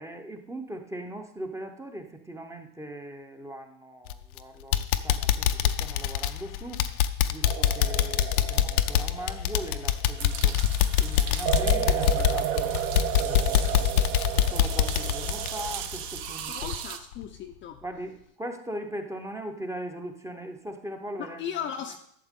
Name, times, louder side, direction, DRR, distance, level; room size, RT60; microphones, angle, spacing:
voice 1, 0.0-6.8 7.3-10.6 11.0-12.7 13.2-14.2 14.5-16.7 17.8-21.6, right 1 dB, 5° right, 5 dB, 0.7 m, -39 dB
sound 1, 4.1-4.4 4.7-16.3 16.6-16.8 17.2-17.3, left 11 dB, 85° left, 0.8 m, -24 dB
sound 2, 7.5-10.5 11.4-15.7, right 13 dB, 85° right, 0.8 m, -32 dB
sound 3, 10.2-17.0, right 9 dB, 50° right, 0.9 m, -38 dB
voice 2, 16.5-17.8 21.2-22.0, left 8 dB, 30° left, 4 dB, 0.5 m, -36 dB
12.0 x 7.0 x 3.7 m, 0.70 s
supercardioid pair, 125°, 42 cm